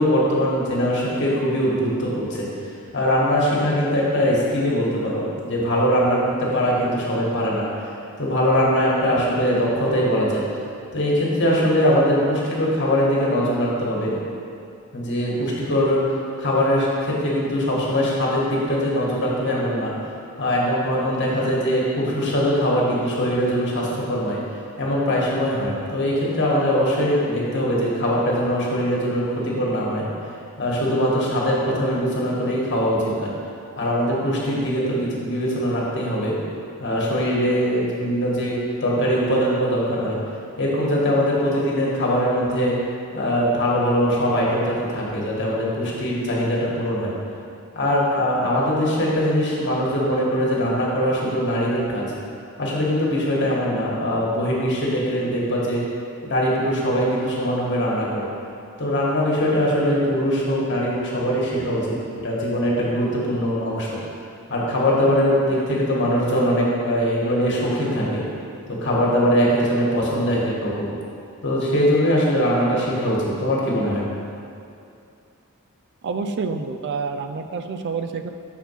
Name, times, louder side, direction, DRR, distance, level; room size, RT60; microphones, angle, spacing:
voice 1, 0.0-2.5 2.9-7.7 8.2-10.4 10.9-14.2 14.9-16.0 16.4-19.9 20.4-24.4 24.8-30.1 30.6-33.3 33.8-36.3 36.8-40.2 40.6-42.8 43.1-47.1 47.7-52.0 52.6-55.8 56.2-58.2 58.8-62.0 62.2-64.0 64.5-68.2 68.7-70.9 71.4-74.1, equal, 55° left, -5 dB, 1.7 m, -21 dB
voice 2, 76.0-78.3, right 4 dB, 55° right, 7 dB, 0.4 m, -28 dB
7.1 x 4.4 x 5.7 m, 2.6 s
head